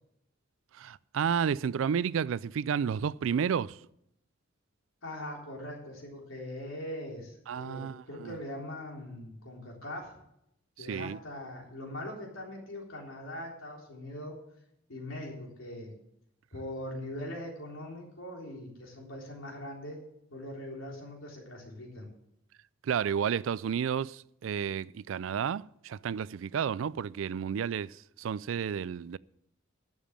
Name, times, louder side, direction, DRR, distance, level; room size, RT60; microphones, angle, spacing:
voice 1, 0.7-3.8 7.5-8.4 10.8-11.2 22.8-29.2, right 7 dB, 75° right, 0.3 m, -31 dB
voice 2, 5.0-10.1 10.8-14.4 14.9-15.9 16.5-20.0 20.3-22.1, left 1 dB, 80° left, 3.7 m, -41 dB
11.5 x 7.2 x 7.3 m
head